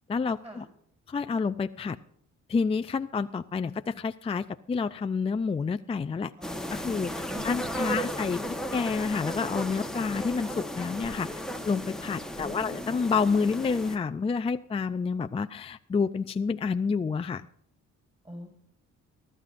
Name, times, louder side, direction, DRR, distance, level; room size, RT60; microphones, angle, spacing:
voice 1, 0.1-0.7 1.1-2.0 2.5-6.3 6.7-8.4 8.7-11.3 11.7-17.5, left 5 dB, 20° left, 9 dB, 0.4 m, -29 dB
sound 1, 6.4-14.0, equal, ahead, 1.2 m, -35 dB
voice 2, 6.4-7.0 7.3-8.3 12.4-13.0 18.2-18.5, equal, 20° right, 3 dB, 6.1 m, -44 dB
24.0 x 12.5 x 2.6 m, 0.70 s
cardioid pair, 90°, 30 cm